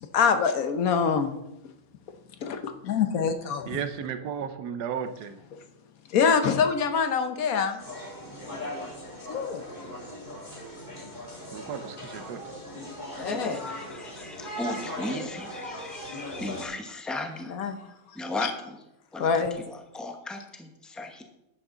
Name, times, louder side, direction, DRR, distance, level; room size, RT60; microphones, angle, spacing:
voice 1, 0.1-1.3 2.4-3.8 5.3-5.6 6.1-7.8 9.3-9.6 13.2-13.6 17.1-18.5 19.2-19.6 20.0-20.2 21.0-21.1, left 6 dB, 60° left, 8 dB, 1.2 m, -26 dB
voice 2, 3.7-5.4 11.5-12.4, right 7 dB, 75° right, 9 dB, 1.4 m, -34 dB
sound 1, 7.8-16.7, left 1 dB, 25° left, 2.2 m, -39 dB
voice 3, 13.2-18.8 19.1-21.2, left 2 dB, ahead, 4 dB, 0.7 m, -36 dB
11.0 x 8.6 x 3.9 m, 0.87 s
omnidirectional pair, 1.8 m